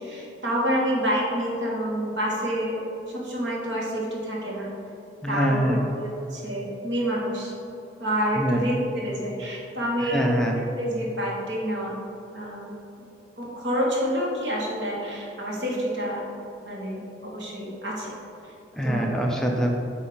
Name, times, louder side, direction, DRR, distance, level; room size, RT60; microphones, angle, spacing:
voice 1, 0.0-2.8 3.1-4.7 5.3-7.5 8.0-10.2 10.7-11.9 12.3-12.7 13.0-13.1 13.4-16.3 16.6-18.1 18.8-19.1, equal, 90° right, -3 dB, 1.5 m, -28 dB
voice 2, 5.2-5.8 8.4-8.6 10.1-10.6 18.8-19.7, equal, 5° left, 0 dB, 0.5 m, -24 dB
8.3 x 2.8 x 5.1 m, 2.7 s
head